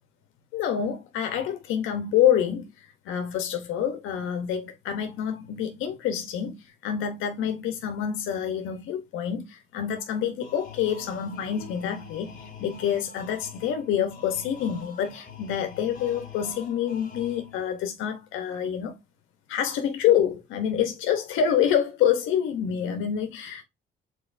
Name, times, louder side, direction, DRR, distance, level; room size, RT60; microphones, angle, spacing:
voice 1, 0.5-2.7 3.0-19.0 19.5-23.6, left 9 dB, 90° left, 0.8 m, -27 dB
sound 1, 10.4-17.8, left 5 dB, 45° left, 1.9 m, -46 dB
5.1 x 4.0 x 2.5 m
cardioid pair, 90°, 20 cm